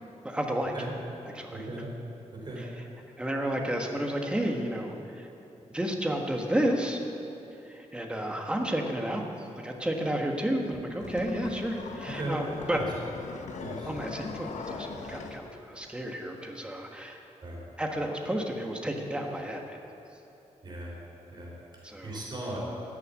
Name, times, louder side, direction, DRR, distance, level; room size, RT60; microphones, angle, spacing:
voice 1, 0.2-0.7 1.3-1.7 2.6-2.7 3.2-5.3 5.7-7.0 7.6-12.8 13.8-17.2 17.8-19.8 21.8-22.2, right 1 dB, 10° right, 2 dB, 1.3 m, -31 dB
voice 2, 1.5-1.9 2.4-2.6 12.1-12.4 12.7-12.8 13.6-13.9 17.4-17.6 20.6-20.9 21.3-22.6, right 2 dB, 40° right, -4 dB, 4.0 m, -38 dB
sound 1, 10.7-15.4, left 5 dB, 85° left, 0.9 m, -40 dB
14.5 x 6.7 x 9.4 m, 2.9 s
wide cardioid pair, 170°, 12 cm